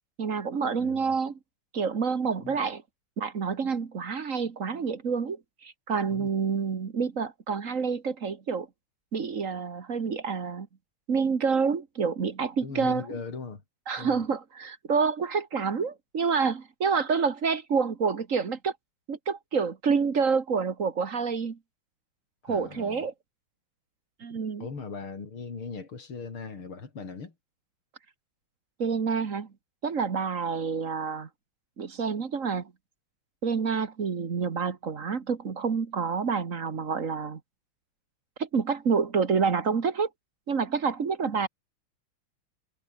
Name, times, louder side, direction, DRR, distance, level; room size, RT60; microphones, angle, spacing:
voice 1, 0.2-1.4 1.7-2.8 3.2-8.7 9.1-10.7 11.1-13.0 13.9-18.7 19.1-21.6 22.4-23.1 24.2-24.7 28.8-29.5 29.8-31.3 31.8-32.7 33.4-37.4 38.4-40.1 40.5-41.5, right 5 dB, 40° right, 1.7 m, -28 dB
voice 2, 0.8-1.1 2.4-2.6 6.1-6.3 12.6-13.6 14.0-14.2 22.5-23.0 24.6-27.3, left 4 dB, 80° left, 4.7 m, -39 dB
omnidirectional pair, 2.3 m